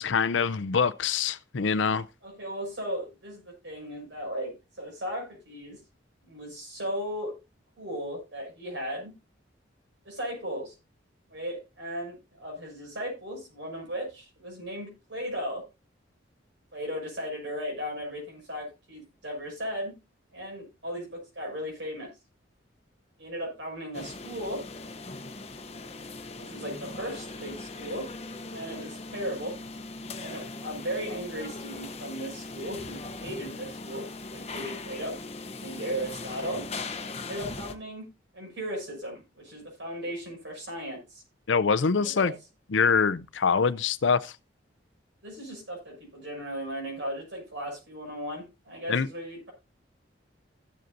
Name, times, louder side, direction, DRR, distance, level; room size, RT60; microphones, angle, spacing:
voice 1, 0.0-2.1 41.5-42.3 42.7-44.3 48.9-49.1, left 5 dB, 75° left, 0.6 m, -24 dB
voice 2, 2.2-5.8 6.2-7.4 7.8-9.1 10.0-10.7 11.3-15.6 16.7-19.9 20.3-22.1 23.2-24.6 26.4-28.1 28.5-29.5 30.2-34.1 34.3-35.2 35.6-36.7 37.2-38.0 38.3-41.2 41.9-42.3 45.2-49.5, equal, 70° right, 6.5 m, -36 dB
sound 1, 23.9-37.7, left 3 dB, 35° left, 1.0 m, -39 dB
16.0 x 7.7 x 2.7 m
head